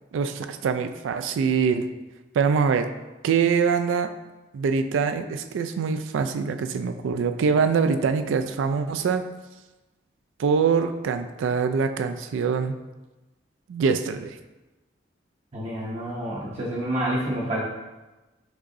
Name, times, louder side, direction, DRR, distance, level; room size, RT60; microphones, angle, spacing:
voice 1, 0.1-1.9 2.3-2.9 3.2-4.1 4.5-9.2 10.4-12.8 13.7-14.4, right 5 dB, 85° right, 8 dB, 0.3 m, -24 dB
voice 2, 15.5-17.6, right 1 dB, 35° right, -5 dB, 0.6 m, -28 dB
6.1 x 3.0 x 2.6 m, 1.1 s
head